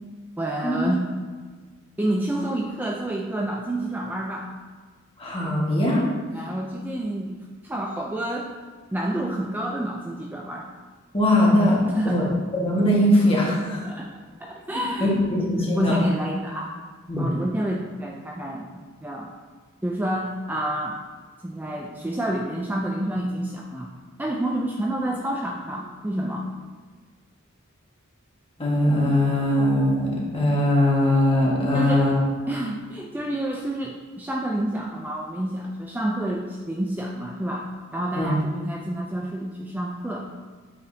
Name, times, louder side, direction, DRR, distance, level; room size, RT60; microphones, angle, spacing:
voice 1, 0.4-1.0 2.0-4.5 6.3-8.5 8.9-10.7 11.9-12.3 13.8-14.1 14.4-16.7 17.2-19.3 19.8-21.0 21.4-23.9 24.2-26.6 31.7-32.1 32.5-40.2, right 1 dB, 10° right, -1 dB, 0.4 m, -29 dB
voice 2, 5.2-6.0 11.1-11.8 12.0-12.3 12.5-13.9 15.0-15.9 17.1-17.3 28.6-32.2 38.1-38.3, left 1 dB, 30° left, -5 dB, 1.5 m, -21 dB
7.9 x 5.0 x 2.7 m, 1.5 s
head